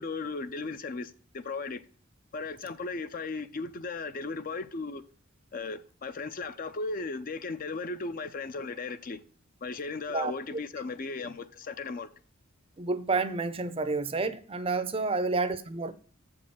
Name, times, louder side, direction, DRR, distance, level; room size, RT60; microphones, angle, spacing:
voice 1, 0.0-1.8 2.3-5.0 5.5-9.2 9.6-12.1, left 3 dB, 40° left, 0.5 m, -36 dB
voice 2, 12.8-15.9, right 3 dB, 25° right, 0.5 m, -29 dB
7.4 x 5.3 x 5.5 m
head